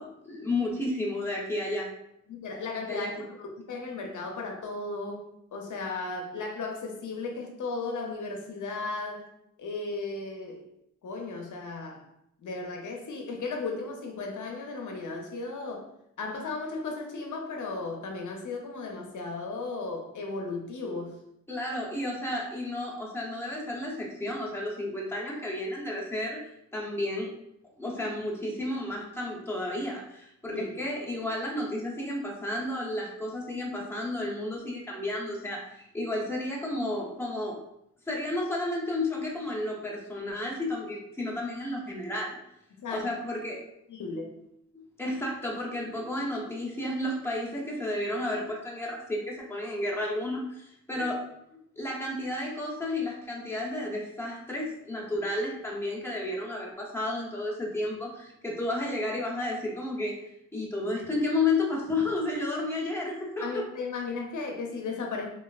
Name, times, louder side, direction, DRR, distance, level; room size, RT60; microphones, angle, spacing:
voice 1, 0.0-1.9 2.9-3.2 21.5-26.4 26.7-27.3 27.8-37.6 38.1-42.4 42.9-43.6 44.7-51.2 51.8-60.1 60.5-63.6, left 2 dB, 5° left, -4 dB, 0.7 m, -32 dB
voice 2, 2.3-9.3 9.6-10.7 11.0-12.1 12.4-15.9 16.2-21.2 30.5-30.8 42.7-43.1 43.9-44.3 50.9-51.1 63.4-65.3, left 3 dB, 65° left, 2 dB, 0.6 m, -35 dB
3.1 x 2.3 x 2.3 m, 0.78 s
wide cardioid pair, 100°, 32 cm